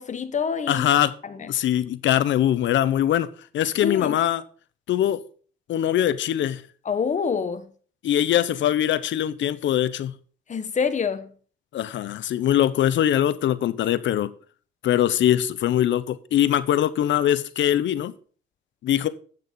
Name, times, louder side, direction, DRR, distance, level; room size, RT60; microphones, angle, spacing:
voice 1, 0.0-0.9 1.2-1.5 3.8-4.2 6.8-7.7 10.5-11.3, left 6 dB, 40° left, 1.1 m, -26 dB
voice 2, 0.7-1.1 1.5-3.3 3.5-4.4 4.9-5.2 5.7-6.6 8.0-10.1 11.7-14.3 14.8-18.1 18.8-19.1, left 11 dB, 70° left, 0.8 m, -22 dB
8.6 x 6.7 x 5.3 m
cardioid pair, 90°, 20 cm